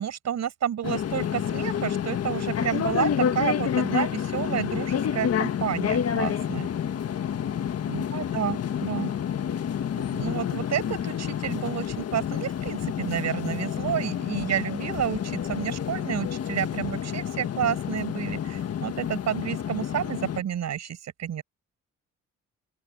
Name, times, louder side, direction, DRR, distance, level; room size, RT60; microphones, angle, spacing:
voice 1, 0.0-6.7 7.9-9.1 10.1-21.4, right 9 dB, 65° right, 6.5 m, -30 dB
sound 1, 0.8-20.4, left 8 dB, 55° left, 1.6 m, -29 dB
open air
cardioid pair, 90°, 30 cm